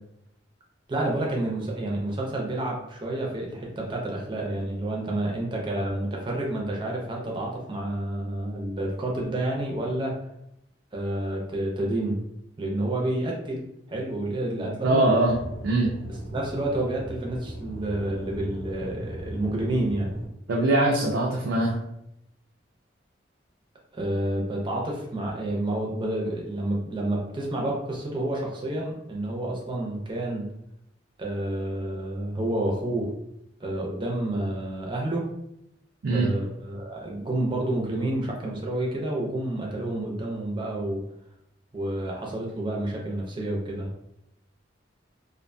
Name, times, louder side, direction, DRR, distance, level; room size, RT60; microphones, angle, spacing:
voice 1, 0.9-10.2 10.9-12.2 12.6-15.1 16.3-20.1 23.9-30.5 31.2-33.1 33.6-35.3 36.1-41.0 41.7-43.9, right 1 dB, 25° right, -1 dB, 0.5 m, -29 dB
voice 2, 14.8-15.9 20.5-21.8 36.0-36.3, right 2 dB, 80° right, -3 dB, 0.4 m, -22 dB
Aircraft / Engine, 15.3-20.3, equal, 50° left, 0.6 m, -38 dB
2.5 x 2.2 x 2.5 m, 0.80 s
head